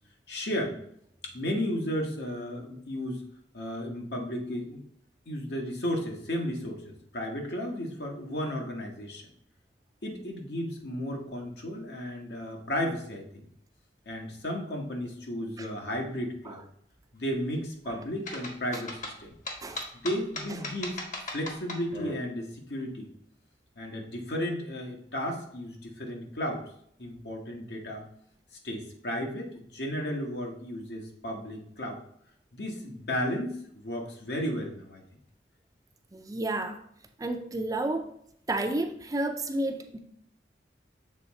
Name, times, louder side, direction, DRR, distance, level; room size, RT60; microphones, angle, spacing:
voice 1, 0.3-0.8 1.2-3.2 3.5-4.8 5.3-9.2 10.0-13.2 14.0-16.6 17.1-19.3 19.9-23.1 23.8-26.6 27.0-28.0 28.6-32.0 32.5-35.0, equal, 70° left, 1 dB, 1.4 m, -34 dB
sound 1, 18.3-22.1, left 2 dB, 45° left, 1.3 m, -37 dB
voice 2, 36.1-36.8 37.2-38.1 38.5-40.0, right 2 dB, 20° right, 6 dB, 0.5 m, -31 dB
7.0 x 3.6 x 4.2 m, 0.68 s
head